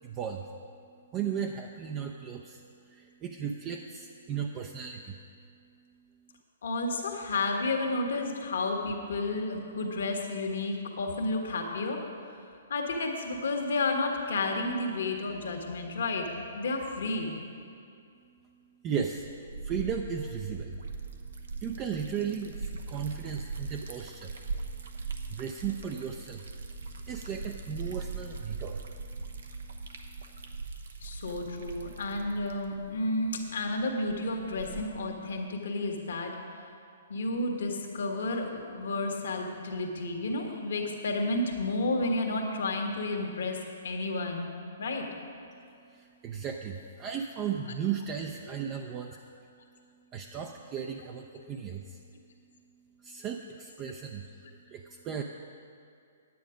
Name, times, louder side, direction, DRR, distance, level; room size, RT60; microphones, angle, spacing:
voice 1, 0.0-0.5 1.1-5.2 18.8-19.3 19.6-20.8 21.6-24.4 25.3-26.4 27.1-28.9 45.9-49.2 50.1-52.0 53.0-55.2, right 7 dB, 30° right, 2 dB, 0.6 m, -36 dB
voice 2, 6.6-12.0 12.7-17.4 31.0-36.3 37.1-44.5 44.8-45.1 51.4-51.5, left 2 dB, 70° left, 2 dB, 1.6 m, -31 dB
Liquid, 19.0-35.1, right 4 dB, 75° right, 1.0 m, -41 dB
9.4 x 9.3 x 5.1 m, 2.4 s
hypercardioid pair, 130°, 0 cm